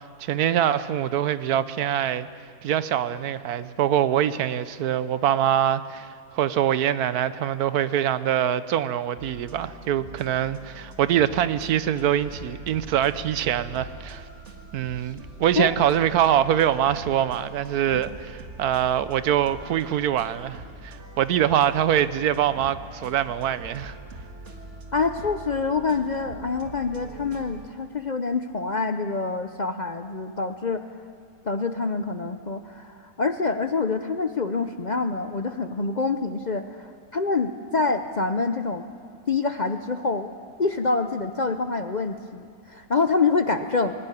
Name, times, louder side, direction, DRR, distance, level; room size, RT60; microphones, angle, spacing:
voice 1, 0.2-2.3 2.6-6.1 6.3-14.2 14.7-23.9, right 10 dB, 85° right, 1.3 m, -24 dB
sound 1, 9.2-27.7, right 2 dB, 50° right, 2.1 m, -43 dB
voice 2, 24.9-30.8 31.4-38.9 39.3-40.3 40.6-43.9, left 4 dB, 45° left, 0.6 m, -26 dB
20.5 x 17.5 x 9.9 m
omnidirectional pair, 1.6 m